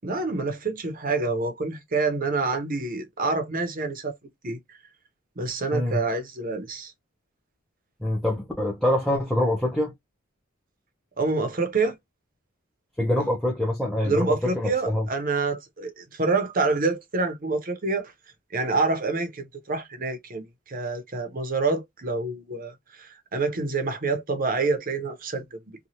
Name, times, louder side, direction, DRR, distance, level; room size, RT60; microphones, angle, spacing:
voice 1, 0.0-4.1 4.4-4.8 5.4-6.9 11.2-12.0 14.0-18.1 18.5-25.6, right 3 dB, 40° right, 0.8 m, -27 dB
voice 2, 8.0-9.9 13.0-15.1, left 1 dB, 5° left, 0.6 m, -25 dB
3.0 x 2.3 x 2.7 m
head